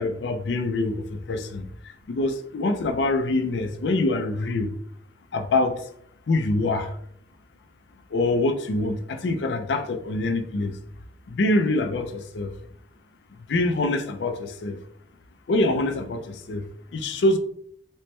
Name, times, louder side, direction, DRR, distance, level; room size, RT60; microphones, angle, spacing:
voice 1, 0.0-1.7 2.1-4.7 5.3-5.8 6.3-6.9 8.1-10.8 11.3-12.5 13.5-14.8 15.5-16.6 16.9-17.4, left 2 dB, 75° left, 0.4 m, -25 dB
4.3 x 2.1 x 3.2 m
head